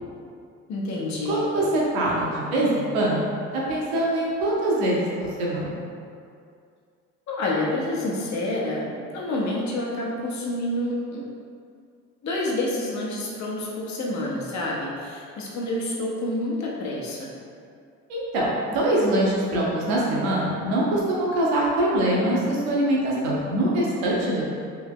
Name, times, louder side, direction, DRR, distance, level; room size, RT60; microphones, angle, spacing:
voice 1, 0.7-1.5 7.3-11.3 12.2-17.3, left 1 dB, 45° left, -4 dB, 1.0 m, -28 dB
voice 2, 1.3-3.3 3.5-5.1 5.4-5.8 18.1-24.5, right 1 dB, 75° right, -4 dB, 1.0 m, -23 dB
3.5 x 2.8 x 3.6 m, 2.3 s
hypercardioid pair, 60°, 38 cm